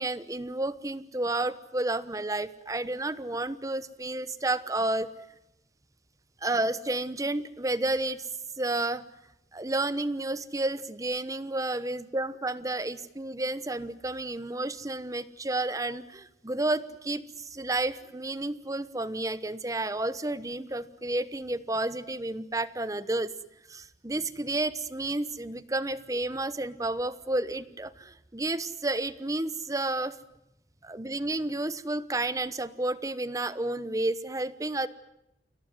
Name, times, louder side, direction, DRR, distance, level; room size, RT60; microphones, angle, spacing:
voice 1, 0.0-5.1 6.4-8.3 8.6-9.0 9.5-23.3 23.7-30.2 30.8-34.9, right 2 dB, 20° right, 15 dB, 1.1 m, -31 dB
30.0 x 17.5 x 9.6 m, 0.84 s
head